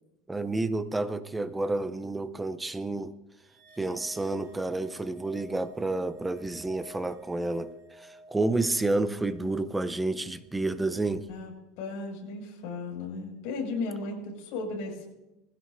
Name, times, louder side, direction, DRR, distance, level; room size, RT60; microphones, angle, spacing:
voice 1, 0.3-3.1 3.8-11.3, right 2 dB, 5° right, 0.6 m, -30 dB
sound 1, 3.4-10.0, right 1 dB, 75° right, 3.5 m, -52 dB
voice 2, 11.3-15.1, left 3 dB, 60° left, 5.8 m, -35 dB
21.5 x 15.5 x 2.6 m
cardioid pair, 170°, 0 cm